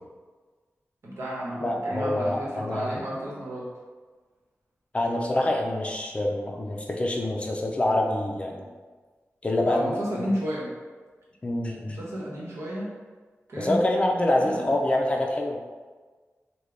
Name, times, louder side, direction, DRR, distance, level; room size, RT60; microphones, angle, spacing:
voice 1, 1.0-3.7 9.7-10.7 11.9-12.9 13.5-13.8 14.4-14.7, equal, 80° right, -6 dB, 1.0 m, -32 dB
voice 2, 1.6-3.0 4.9-8.7 9.4-9.9 10.2-10.3 11.4-12.0 13.6-15.6, left 1 dB, 25° left, 0 dB, 0.4 m, -26 dB
3.3 x 2.2 x 3.6 m, 1.4 s
wide cardioid pair, 125°, 5 cm